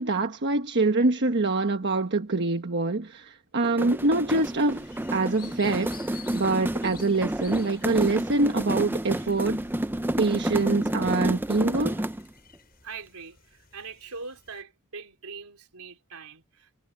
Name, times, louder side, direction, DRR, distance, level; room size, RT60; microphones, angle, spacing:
voice 1, 0.0-5.9 6.3-9.6 10.2-12.0, right 3 dB, 50° right, 1.2 m, -25 dB
sound 1, 3.6-12.3, right 1 dB, 10° right, 0.5 m, -30 dB
sound 2, 4.7-14.6, left 8 dB, 45° left, 6.6 m, -53 dB
voice 2, 12.8-16.8, right 4 dB, 80° right, 3.9 m, -42 dB
head